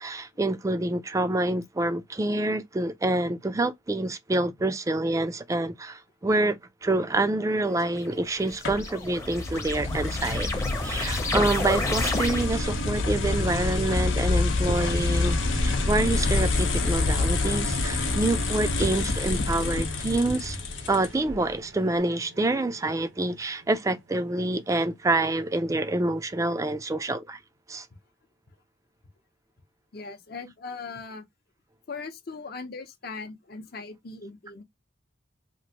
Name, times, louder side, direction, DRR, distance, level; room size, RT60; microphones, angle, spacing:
voice 1, 0.0-10.5 10.8-15.4 15.6-20.6 20.9-27.4 27.7-27.9, right 2 dB, 15° right, 0.3 m, -27 dB
sound 1, 7.8-12.8, left 2 dB, 15° left, 0.7 m, -32 dB
sound 2, 8.6-21.3, left 2 dB, 90° left, 0.8 m, -27 dB
sound 3, 14.7-25.2 25.8-25.9, right 3 dB, 65° right, 0.6 m, -45 dB
voice 2, 29.9-31.2 31.9-34.6, left 4 dB, 55° left, 0.7 m, -39 dB
2.9 x 2.5 x 2.7 m
head